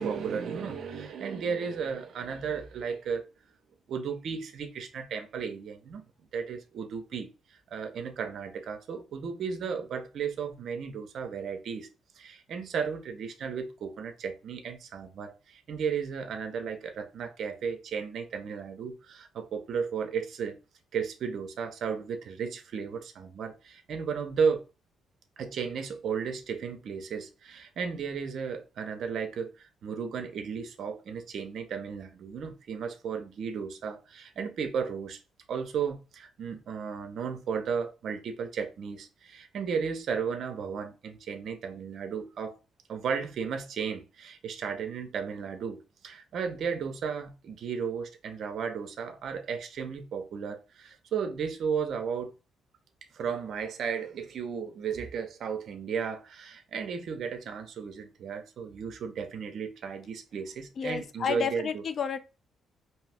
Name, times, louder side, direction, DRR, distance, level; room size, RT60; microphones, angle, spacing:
voice 1, 0.0-3.2 3.9-6.0 6.3-11.9 12.2-20.6 20.9-24.7 25.4-35.2 35.5-42.5 42.9-52.3 53.1-61.8, right 6 dB, 65° right, 0.6 m, -34 dB
voice 2, 60.8-62.2, left 7 dB, 50° left, 0.4 m, -31 dB
2.8 x 2.3 x 3.4 m
cardioid pair, 90°, 0 cm